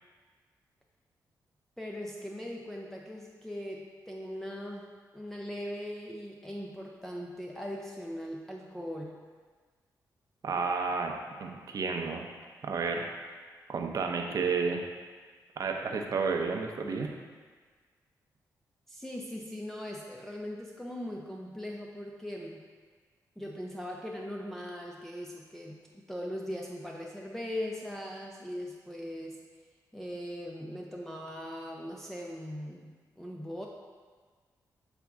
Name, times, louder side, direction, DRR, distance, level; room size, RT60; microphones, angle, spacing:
voice 1, 1.8-9.2 18.9-22.6 23.4-25.8 26.1-29.4 29.9-33.7, equal, 5° left, -2 dB, 0.5 m, -40 dB
voice 2, 10.4-11.1 11.4-12.2 12.6-13.1 13.7-14.8 15.6-17.2, right 4 dB, 60° right, 3 dB, 0.7 m, -31 dB
7.3 x 3.6 x 3.6 m, 1.5 s
cardioid pair, 80°, 7 cm